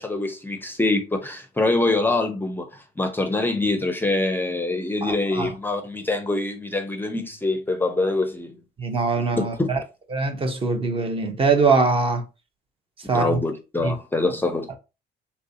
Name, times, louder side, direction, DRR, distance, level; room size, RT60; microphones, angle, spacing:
voice 1, 0.0-8.6 9.4-9.7 13.1-14.7, left 2 dB, 10° left, 0.5 m, -24 dB
voice 2, 5.0-5.5 8.8-9.8 10.1-12.2 13.1-13.4 13.8-13.9, right 4 dB, 35° right, 0.7 m, -22 dB
3.3 x 2.6 x 2.6 m
cardioid pair, 110°, 17 cm